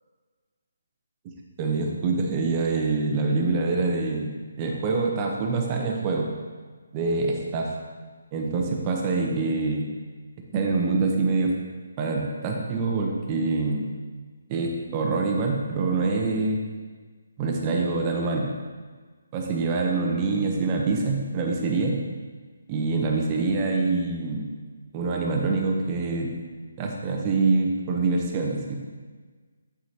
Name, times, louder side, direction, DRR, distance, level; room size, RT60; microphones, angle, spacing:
voice 1, 1.6-6.3 6.9-7.7 8.3-9.9 10.5-11.5 12.0-13.9 14.5-16.6 17.4-18.5 19.3-22.0 22.7-24.5 24.9-26.3 26.8-28.8, right 3 dB, 20° right, 0 dB, 0.8 m, -25 dB
13.5 x 4.8 x 2.9 m, 1.4 s
hypercardioid pair, 175°, 0 cm